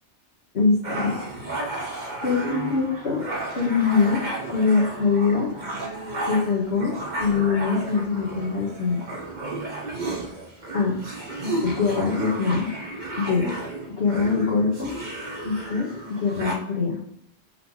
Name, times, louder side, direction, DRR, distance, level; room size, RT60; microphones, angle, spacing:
voice 1, 0.5-1.1 2.2-3.2 3.5-5.5 6.3-9.0 10.7-11.0 11.6-12.7 13.2-13.5 14.0-14.9 15.4-17.0, left 4 dB, 60° left, -5 dB, 1.6 m, -23 dB
sound 1, 0.8-16.5, right 2 dB, 40° right, 1.3 m, -33 dB
5.7 x 4.0 x 4.8 m, 0.74 s
omnidirectional pair, 1.2 m